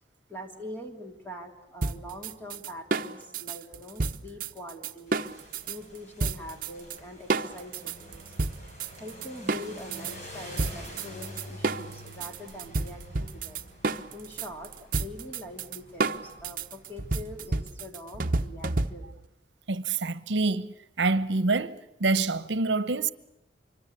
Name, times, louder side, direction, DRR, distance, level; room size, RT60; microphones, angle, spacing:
voice 1, 0.3-13.7 14.1-19.1, left 1 dB, 10° left, 3.1 m, -44 dB
sound 1, 1.8-5.8 6.2-7.0 7.3-10.1 10.6-19.2, right 3 dB, 50° right, 1.0 m, -30 dB
sound 2, 5.1-17.6, equal, 40° left, 6.7 m, -47 dB
voice 2, 19.7-23.1, right 3 dB, 80° right, 1.0 m, -27 dB
25.5 x 24.0 x 8.4 m
head